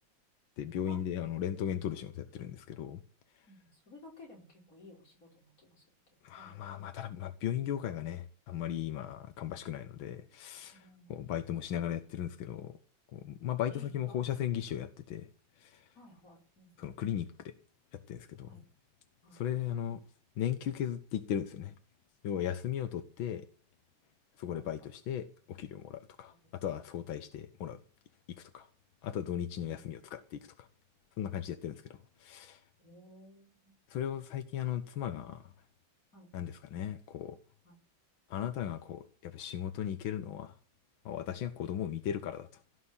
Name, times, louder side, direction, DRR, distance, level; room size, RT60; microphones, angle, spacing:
voice 1, 0.6-3.0 6.2-10.8 11.1-12.8 13.1-15.3 15.6-15.9 16.8-17.5 18.1-18.5 19.3-20.0 20.4-21.7 22.2-23.5 24.4-26.3 26.6-27.8 28.4-28.7 29.0-30.7 31.2-31.8 32.2-32.6 33.9-35.5 36.3-37.4 38.3-40.5 41.1-42.5, left 10 dB, 90° left, 1.8 m, -37 dB
voice 2, 3.4-5.8 6.3-7.0 10.7-11.3 13.7-14.4 16.0-17.0 18.5-18.6 19.2-19.4 24.5-24.7 26.4-26.6 29.7-29.9 32.8-33.8 36.1-36.3 37.6-37.8, left 2 dB, 45° left, 5.4 m, -56 dB
17.0 x 6.4 x 9.7 m
omnidirectional pair, 2.1 m